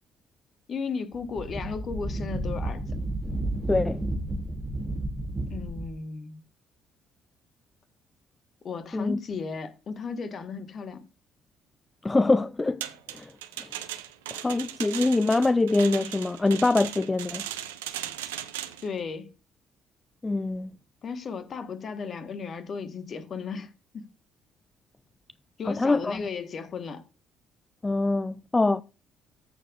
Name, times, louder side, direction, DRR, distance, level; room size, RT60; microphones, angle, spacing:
voice 1, 0.7-2.9 5.4-6.4 8.6-11.0 18.8-19.3 21.0-24.1 25.6-27.0, left 5 dB, 45° left, 1.4 m, -35 dB
Wind, 1.1-6.0, right 1 dB, 20° right, 2.6 m, -31 dB
voice 2, 3.7-4.0 8.9-9.2 12.0-12.8 13.1-13.3 13.6-13.7 14.3-17.4 20.2-20.7 25.7-26.2 27.8-28.8, left 2 dB, 20° left, 0.4 m, -24 dB
sound 1, 12.8-18.9, right 12 dB, 75° right, 0.6 m, -37 dB
14.5 x 6.8 x 2.5 m
figure-of-eight pair, 45°, 0 cm